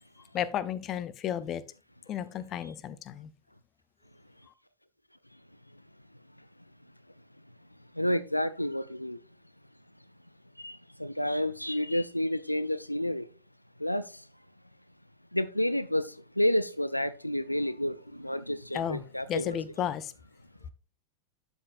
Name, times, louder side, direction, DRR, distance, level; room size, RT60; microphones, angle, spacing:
voice 1, 0.3-1.6 2.1-3.3 18.7-19.0 19.3-20.1, left 10 dB, 30° left, 0.6 m, -33 dB
voice 2, 7.9-9.2 10.6-13.3 13.8-14.3 15.3-19.6, left 1 dB, 90° left, 0.4 m, -30 dB
12.0 x 5.4 x 2.5 m
figure-of-eight pair, 90°, 0 cm